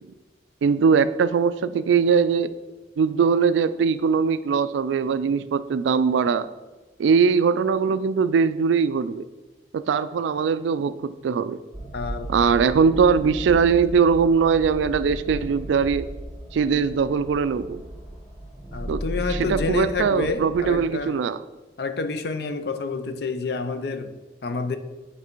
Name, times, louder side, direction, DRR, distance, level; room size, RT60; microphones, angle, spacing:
voice 1, 0.6-2.5 3.0-6.5 7.0-9.2 9.7-11.6 12.3-16.1 16.5-17.8 18.9-19.0 19.3-21.4, right 6 dB, 80° right, 14 dB, 0.3 m, -21 dB
sound 1, 11.7-20.8, equal, ahead, 1.1 m, -35 dB
voice 2, 11.9-12.3 18.7-21.2 21.8-24.8, left 4 dB, 60° left, 9 dB, 0.5 m, -29 dB
8.1 x 3.3 x 4.5 m, 1.2 s
head